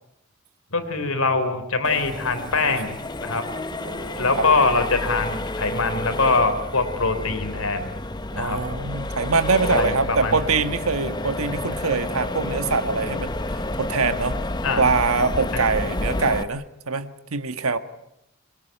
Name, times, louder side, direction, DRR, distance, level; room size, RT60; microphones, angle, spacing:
voice 1, 0.7-2.9 3.2-3.4 4.2-7.9 8.4-8.6 9.7-10.4 14.6-14.8, left 3 dB, 80° left, 8 dB, 3.4 m, -23 dB
Accelerating revving vroom, 1.8-16.4, left 2 dB, 20° left, 0.8 m, -30 dB
voice 2, 3.8-4.4 8.3-14.4 14.8-17.8, right 4 dB, 85° right, 10 dB, 1.5 m, -24 dB
23.0 x 22.0 x 9.1 m, 0.85 s
head